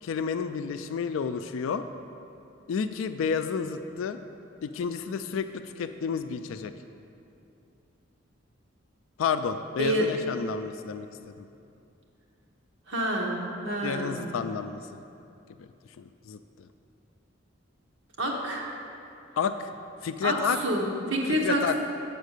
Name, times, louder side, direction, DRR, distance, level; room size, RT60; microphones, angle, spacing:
voice 1, 0.0-1.8 2.7-4.2 4.6-6.7 9.2-11.5 13.8-15.0 15.6-15.7 16.0-16.7 19.4-19.7 20.0-20.6 21.3-21.8, left 6 dB, 85° left, 10 dB, 0.3 m, -31 dB
voice 2, 12.9-13.4 13.6-14.2 18.2-18.7 20.2-21.8, right 1 dB, 70° right, -1 dB, 1.2 m, -27 dB
8.1 x 4.5 x 6.6 m, 2.7 s
head